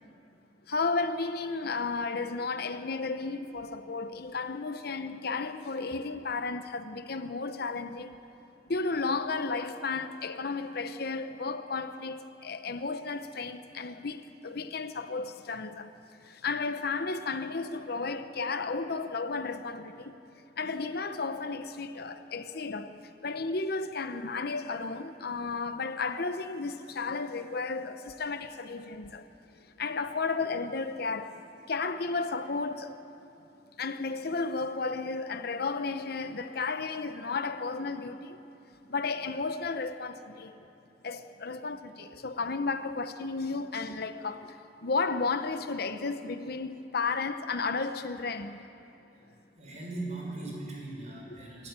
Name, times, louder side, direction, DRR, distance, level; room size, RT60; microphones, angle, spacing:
voice 1, 0.7-8.1 8.7-15.9 16.3-20.2 20.6-29.2 29.8-31.4 31.7-33.0 33.8-38.4 38.9-40.6 41.0-44.5 44.8-48.6 51.3-51.4, left 4 dB, 60° left, 0.8 m, -33 dB
voice 2, 49.6-51.7, right 2 dB, 40° right, 6.3 m, -39 dB
25.5 x 13.5 x 8.8 m
head